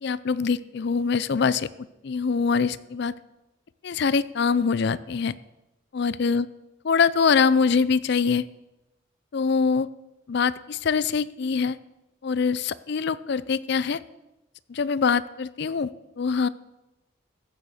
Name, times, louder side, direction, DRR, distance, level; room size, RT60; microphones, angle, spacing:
voice 1, 0.0-1.7 2.0-3.1 3.8-5.3 5.9-6.5 6.8-8.4 9.3-9.9 10.3-11.8 12.2-14.0 14.7-15.9 16.2-16.5, left 5 dB, 55° left, 18 dB, 0.4 m, -23 dB
15.0 x 6.8 x 6.5 m, 0.98 s
head